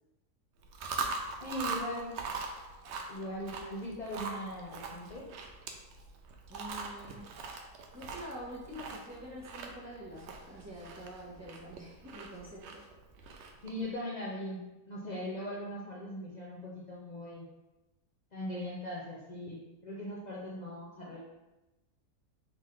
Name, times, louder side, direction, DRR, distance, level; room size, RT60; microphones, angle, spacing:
Chewing mastication, 0.6-13.8, right 4 dB, 65° right, 0.7 m, -42 dB
voice 1, 1.4-2.1 3.1-5.3 13.6-17.5 18.3-21.2, left 1 dB, 75° left, -5 dB, 0.4 m, -40 dB
voice 2, 6.5-7.4 7.9-12.8, equal, 15° right, -6 dB, 0.8 m, -46 dB
3.9 x 3.7 x 3.2 m, 1.0 s
omnidirectional pair, 1.6 m